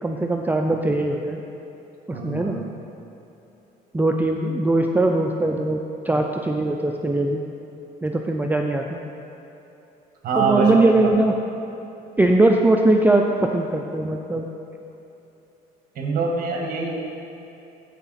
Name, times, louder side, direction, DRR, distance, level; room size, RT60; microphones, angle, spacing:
voice 1, 0.0-1.4 2.1-2.6 3.9-7.4 8.0-9.0 10.4-11.4 12.2-14.5, right 2 dB, 10° right, 2 dB, 0.4 m, -20 dB
voice 2, 2.1-2.5 10.2-10.9 16.0-16.9, right 4 dB, 55° right, 0 dB, 1.7 m, -24 dB
14.0 x 4.8 x 4.1 m, 2.9 s
cardioid pair, 110°, 17 cm